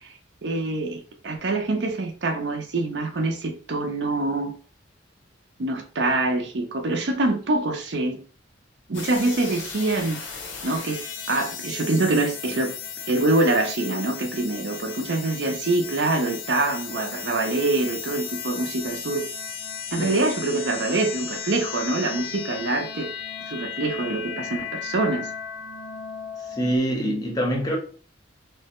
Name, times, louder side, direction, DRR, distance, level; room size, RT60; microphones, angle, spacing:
voice 1, 0.4-4.5 5.6-8.2 8.9-10.2 10.6-12.7 13.1-19.2 19.9-23.1 23.5-25.3, right 2 dB, 65° right, 0.5 m, -25 dB
sound 1, 8.9-26.8, left 7 dB, 80° left, 0.7 m, -35 dB
voice 2, 26.5-27.8, right 1 dB, 20° left, 0.7 m, -25 dB
3.2 x 2.2 x 2.9 m
head